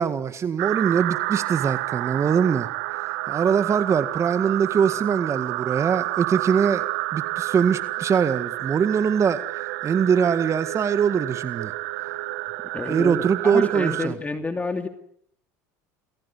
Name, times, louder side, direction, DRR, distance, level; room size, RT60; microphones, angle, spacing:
voice 1, 0.0-6.9 7.1-11.7 12.9-14.2, right 7 dB, 35° right, 1.8 m, -23 dB
sound 1, 0.6-14.1, right 20 dB, 75° right, 1.2 m, -29 dB
voice 2, 12.7-14.9, left 3 dB, 15° left, 2.7 m, -29 dB
28.5 x 20.5 x 8.4 m
supercardioid pair, 95°, 9 cm